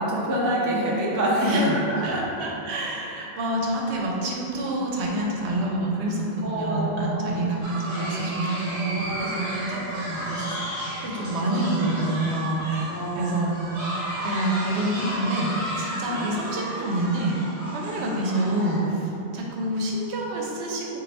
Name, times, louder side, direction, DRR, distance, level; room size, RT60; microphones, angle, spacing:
voice 1, 0.0-2.2 6.4-8.3 8.9-9.6 12.9-13.5 16.1-16.3, right 1 dB, 30° right, -5 dB, 0.3 m, -27 dB
voice 2, 1.4-1.7 2.0-13.5 14.2-15.5 15.8-17.3 17.7-21.0, right 1 dB, 80° right, -2 dB, 0.9 m, -27 dB
sound 1, 7.6-18.9, right 1 dB, 55° right, 1.0 m, -33 dB
3.1 x 2.4 x 4.0 m, 3.0 s
omnidirectional pair, 1.1 m